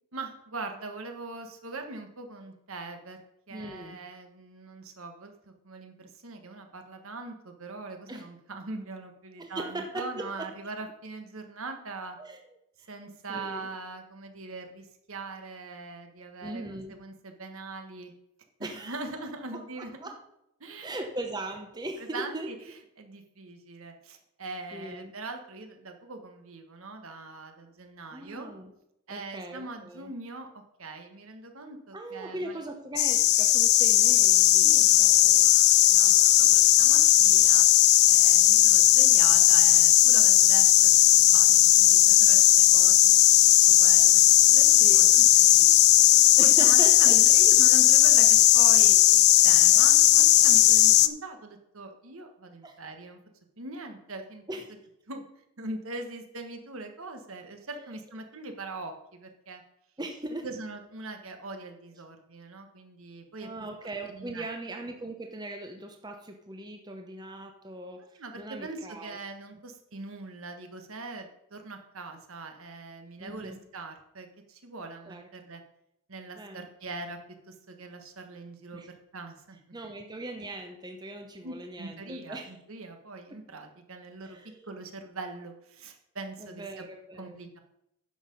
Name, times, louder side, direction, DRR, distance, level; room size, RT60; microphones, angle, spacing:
voice 1, 0.1-3.2 3.5-12.2 12.9-18.1 18.6-20.0 20.6-20.9 22.1-22.5 23.0-28.5 29.1-32.6 34.6-35.0 35.7-36.1 36.4-37.6 38.0-43.2 43.7-45.1 45.4-45.7 46.3-53.2 53.6-54.4 55.1-55.2 55.6-59.6 60.4-63.5 64.1-64.5 68.2-75.6 76.1-77.2 77.5-79.6 81.4-84.4 84.6-86.8 87.2-87.6, right 3 dB, 70° right, 5 dB, 1.5 m, -41 dB
voice 2, 3.5-4.0 8.1-8.3 9.4-10.5 12.2-12.5 12.8-12.9 13.3-13.7 16.4-17.0 18.6-19.0 19.5-20.2 20.8-22.5 24.7-25.1 28.1-28.7 29.1-30.1 31.9-35.5 35.9-36.2 42.1-42.3 44.8-45.1 46.4-47.2 49.7-49.9 50.6-50.9 52.6-52.8 54.5-54.7 57.7-58.0 60.0-60.5 63.4-69.2 73.2-73.6 75.1-75.3 76.4-76.6 78.7-78.9 79.7-82.5 83.3-83.4 84.2-84.7 86.4-87.4, right 1 dB, 20° right, 4 dB, 0.8 m, -40 dB
sound 1, 33.0-51.1, left 14 dB, 45° left, 0.4 m, -18 dB
10.0 x 6.8 x 5.4 m, 0.80 s
head